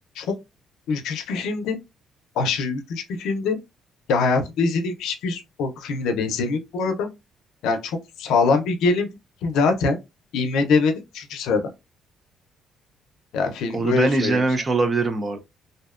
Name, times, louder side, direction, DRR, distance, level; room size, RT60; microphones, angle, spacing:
voice 1, 0.9-1.8 2.4-3.6 4.1-7.1 7.6-9.1 9.4-10.0 10.3-11.6 13.3-14.4, left 4 dB, 85° left, 0.5 m, -23 dB
voice 2, 13.7-15.4, right 3 dB, 25° right, 0.4 m, -22 dB
2.6 x 2.1 x 2.3 m
cardioid pair, 140°, 0 cm